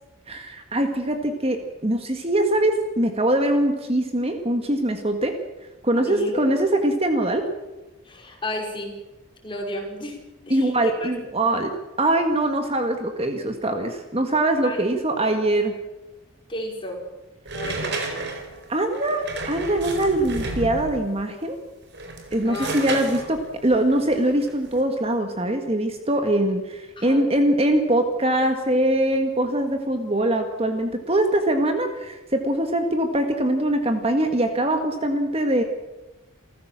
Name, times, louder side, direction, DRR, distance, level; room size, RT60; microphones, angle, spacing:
voice 1, 0.3-5.4 5.8-7.5 10.5-11.7 12.0-15.7 18.7-21.6 22.3-35.6, right 1 dB, 30° right, 5 dB, 1.7 m, -22 dB
voice 2, 6.0-6.6 8.0-9.0 9.4-10.2 10.5-11.4 14.6-15.4 16.5-17.0 17.5-18.2 22.4-23.1 27.0-27.3, left 1 dB, 25° left, 1 dB, 4.9 m, -33 dB
sound 1, 17.5-21.1 21.8-24.8, right 3 dB, 55° right, 4.2 m, -32 dB
28.5 x 15.0 x 7.5 m, 1.1 s
head